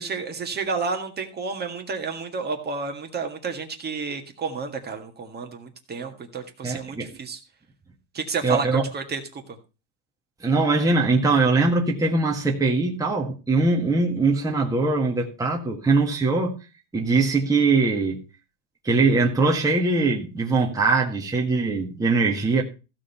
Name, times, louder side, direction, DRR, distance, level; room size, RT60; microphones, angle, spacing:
voice 1, 0.0-7.4 8.1-9.4, right 4 dB, 25° right, 1.8 m, -31 dB
voice 2, 6.6-7.1 8.4-8.8 10.4-16.6 16.9-18.2 18.8-22.6, right 3 dB, 10° right, 1.7 m, -21 dB
15.5 x 5.1 x 5.6 m
supercardioid pair, 140°, 38 cm